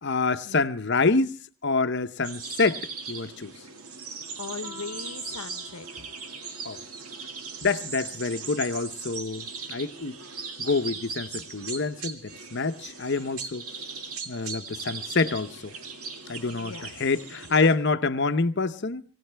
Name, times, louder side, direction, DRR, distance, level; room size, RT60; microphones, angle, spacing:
voice 1, 0.0-3.5 6.6-6.8 7.6-10.2 10.6-13.6 14.3-15.8 16.3-19.0, left 3 dB, 50° left, 0.8 m, -27 dB
sound 1, 2.2-17.7, right 5 dB, 90° right, 2.1 m, -39 dB
voice 2, 4.4-6.1 16.5-16.9, left 5 dB, 90° left, 0.7 m, -39 dB
Piano, 4.6-9.6, left 3 dB, 15° right, 6.0 m, -53 dB
25.0 x 17.0 x 3.4 m
head